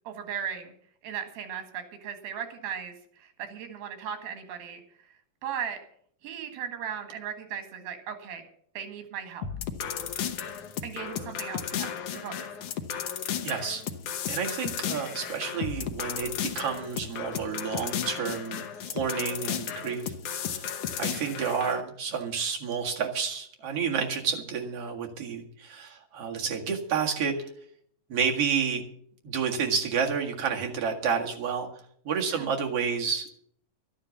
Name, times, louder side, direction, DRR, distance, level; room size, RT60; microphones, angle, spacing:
voice 1, 0.1-0.7 1.0-4.8 5.4-5.8 6.2-8.4 8.8-9.5 10.8-12.5 32.3-32.5, right 8 dB, 85° right, 7 dB, 3.7 m, -37 dB
sound 1, 9.4-21.8, left 8 dB, 70° left, 1.5 m, -34 dB
voice 2, 13.4-13.8 14.3-27.5 28.1-28.8 29.2-31.7 32.0-33.3, right 6 dB, 45° right, 1 dB, 2.6 m, -30 dB
12.5 x 10.5 x 7.1 m, 0.64 s
omnidirectional pair, 4.2 m